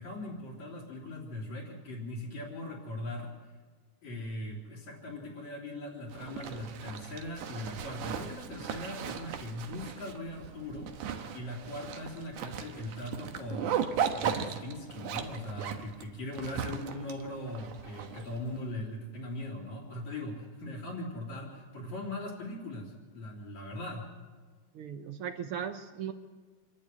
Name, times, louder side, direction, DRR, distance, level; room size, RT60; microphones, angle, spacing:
voice 1, 0.0-3.3 4.0-24.2, left 1 dB, 65° left, 0 dB, 4.4 m, -40 dB
Zipper (clothing), 6.1-18.6, right 8 dB, 80° right, 2.7 m, -37 dB
voice 2, 24.7-26.1, right 8 dB, 65° right, 9 dB, 1.4 m, -37 dB
26.0 x 12.0 x 9.6 m, 1.4 s
omnidirectional pair, 3.5 m